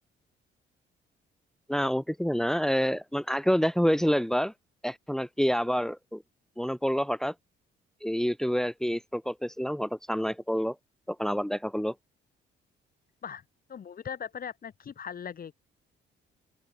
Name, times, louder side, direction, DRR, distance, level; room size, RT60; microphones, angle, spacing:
voice 1, 1.7-4.5 4.8-6.2 6.6-7.3 8.0-10.8 11.1-11.9, equal, ahead, 2.2 m, -28 dB
voice 2, 13.7-15.6, left 7 dB, 50° left, 2.0 m, -39 dB
open air
cardioid pair, 90°, 20 cm